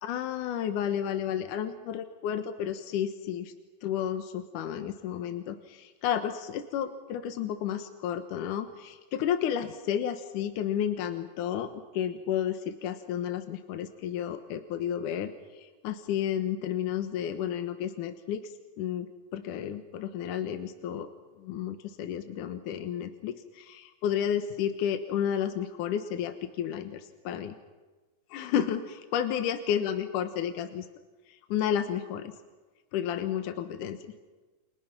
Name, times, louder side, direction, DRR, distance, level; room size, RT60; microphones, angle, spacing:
voice 1, 0.0-3.5 3.8-19.1 19.3-21.1 21.4-27.6 28.3-30.9 31.3-32.3 32.9-34.1, left 9 dB, 85° left, 8 dB, 2.7 m, -32 dB
30.0 x 28.5 x 6.0 m, 1.3 s
omnidirectional pair, 3.5 m